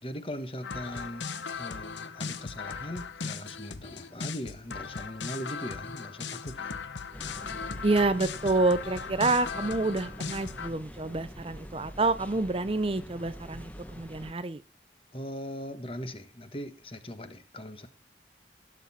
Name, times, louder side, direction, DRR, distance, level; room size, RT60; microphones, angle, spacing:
voice 1, 0.0-1.2 1.5-6.8 15.1-17.9, equal, 30° left, 1.2 m, -40 dB
sound 1, 0.6-10.7, left 5 dB, 85° left, 1.0 m, -38 dB
sound 2, 7.1-14.3, equal, 10° left, 1.0 m, -45 dB
voice 2, 7.8-14.6, right 2 dB, 30° right, 0.6 m, -28 dB
17.0 x 7.6 x 4.2 m
head